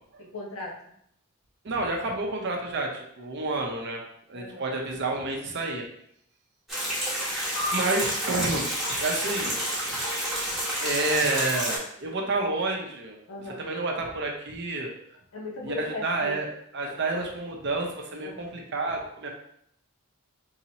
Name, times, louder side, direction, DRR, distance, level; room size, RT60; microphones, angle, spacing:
voice 1, 0.2-0.8 4.3-4.7 13.3-13.6 15.3-16.4 18.2-18.5, left 2 dB, 75° left, -2 dB, 1.0 m, -38 dB
voice 2, 1.6-4.0 4.3-5.9 7.7-8.7 9.0-9.6 10.8-13.2 13.5-14.9 15.6-16.5 16.7-19.3, right 2 dB, 55° right, 1 dB, 0.7 m, -29 dB
sound 1, 6.7-11.8, equal, ahead, 1.1 m, -29 dB
sound 2, 7.5-10.3, left 1 dB, 35° left, 1.0 m, -38 dB
3.9 x 2.8 x 2.8 m, 0.71 s
head